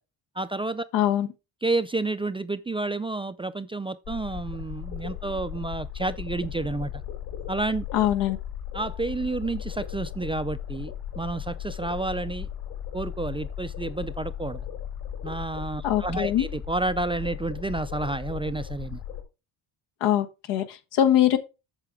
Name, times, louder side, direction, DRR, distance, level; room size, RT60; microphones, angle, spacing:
voice 1, 0.4-0.8 1.6-7.0 7.5-7.9 8.7-12.5 12.9-14.6 15.2-19.0, right 2 dB, 15° right, 0.3 m, -30 dB
voice 2, 0.9-1.3 7.9-8.4 15.8-16.4 20.0-21.4, left 11 dB, 85° left, 1.5 m, -22 dB
sound 1, 4.0-19.2, left 10 dB, 65° left, 4.5 m, -36 dB
8.1 x 6.8 x 3.5 m
cardioid pair, 100°, 41 cm